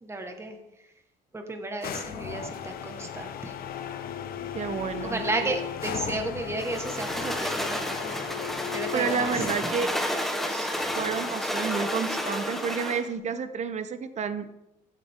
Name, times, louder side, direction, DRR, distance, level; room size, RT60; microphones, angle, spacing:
voice 1, 0.0-0.9 1.3-3.6 5.0-8.3 8.7-9.7, right 2 dB, 15° right, 4 dB, 1.6 m, -33 dB
sound 1, 1.8-9.8 10.7-11.6, left 9 dB, 60° left, 0.9 m, -36 dB
voice 2, 4.5-5.5 8.9-9.9 10.4-14.5, right 6 dB, 45° right, 11 dB, 0.9 m, -30 dB
sound 2, 6.6-13.1, equal, ahead, 1.4 m, -31 dB
15.5 x 7.7 x 3.7 m, 0.91 s
cardioid pair, 110°, 17 cm